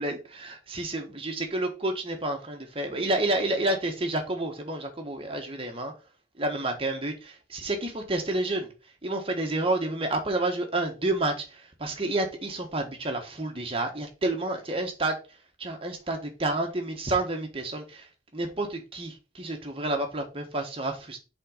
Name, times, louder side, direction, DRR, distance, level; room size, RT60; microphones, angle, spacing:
voice 1, 0.0-5.9 6.3-8.7 9.0-21.2, right 2 dB, 30° right, 1.3 m, -30 dB
5.6 x 3.8 x 5.1 m
head